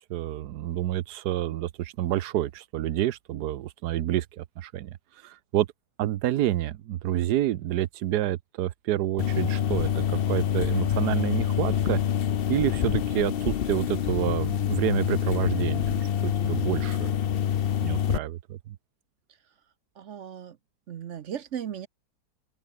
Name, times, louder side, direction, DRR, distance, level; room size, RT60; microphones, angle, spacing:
voice 1, 0.1-4.9 5.2-5.7 6.0-12.0 12.5-17.1 17.8-18.7, right 13 dB, 80° right, 1.3 m, -28 dB
sound 1, 9.2-18.2, left 9 dB, 60° left, 0.6 m, -26 dB
voice 2, 20.0-20.6 20.9-21.9, right 9 dB, 55° right, 1.0 m, -36 dB
open air
omnidirectional pair, 1.8 m